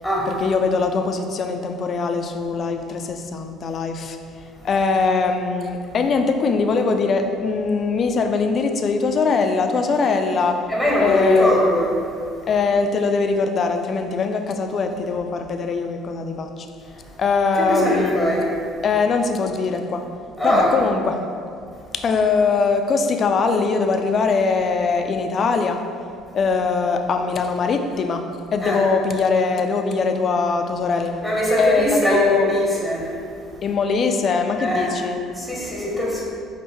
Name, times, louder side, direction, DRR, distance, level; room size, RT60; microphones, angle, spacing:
voice 1, 0.3-4.2 4.6-10.6 11.0-11.5 12.5-16.7 17.2-18.2 18.8-20.0 20.4-21.2 21.9-25.8 26.3-28.2 28.5-31.1 31.6-32.5 33.6-35.2, left 4 dB, 45° left, 5 dB, 0.3 m, -21 dB
voice 2, 10.7-11.9 17.6-18.5 20.4-20.7 28.6-28.8 31.2-33.1 34.6-34.9 35.4-36.2, equal, ahead, -4 dB, 0.9 m, -21 dB
5.4 x 2.1 x 3.1 m, 2.4 s
hypercardioid pair, 60°, 0 cm